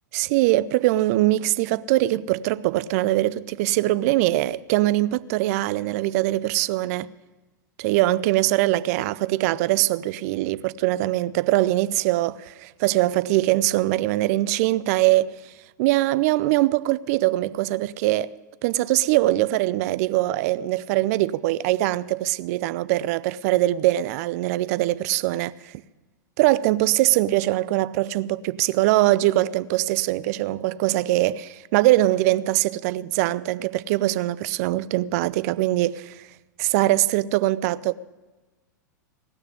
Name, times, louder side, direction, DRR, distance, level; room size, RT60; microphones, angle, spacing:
voice 1, 0.1-7.1 7.8-15.5 15.8-18.3 18.6-25.8 26.4-36.3 36.6-37.9, right 16 dB, 55° right, 0.5 m, -22 dB
17.5 x 6.5 x 9.8 m
hypercardioid pair, 100°, 10 cm